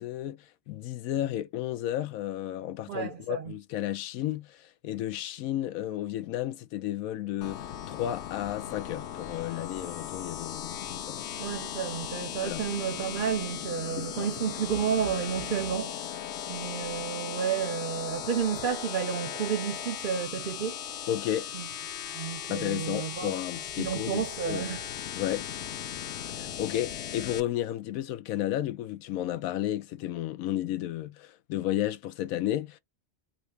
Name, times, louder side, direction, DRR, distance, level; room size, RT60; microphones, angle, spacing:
voice 1, 0.0-11.3 12.4-12.6 14.0-14.3 21.1-21.5 22.5-24.8 25.2-25.4 26.3-32.8, left 12 dB, 90° left, 1.0 m, -33 dB
voice 2, 2.9-3.5 11.4-16.0 16.5-20.8 21.5-21.6 22.1-23.4 23.8-24.9, right 8 dB, 70° right, 0.4 m, -31 dB
sound 1, 7.4-27.4, left 9 dB, 65° left, 0.8 m, -37 dB
2.9 x 2.9 x 3.1 m
omnidirectional pair, 1.4 m